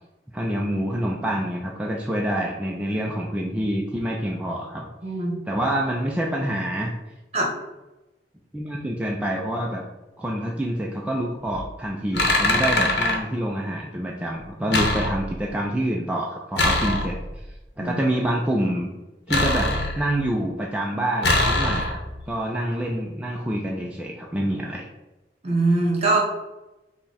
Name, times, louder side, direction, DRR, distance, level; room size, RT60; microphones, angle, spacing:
voice 1, 0.3-4.9 5.5-6.9 8.5-9.8 10.2-18.9 19.3-22.0 22.3-24.9, right 1 dB, 5° right, -2 dB, 0.4 m, -27 dB
voice 2, 5.0-5.4 7.3-7.5 17.8-17.9 21.7-21.8 25.4-26.2, right 2 dB, 35° right, -1 dB, 1.0 m, -22 dB
sound 1, 11.4-11.7 12.1-13.2 14.7-15.5 16.6-17.4 19.3-20.3 21.2-22.2, left 2 dB, 70° left, 0.8 m, -23 dB
5.8 x 2.2 x 4.0 m, 1.0 s
head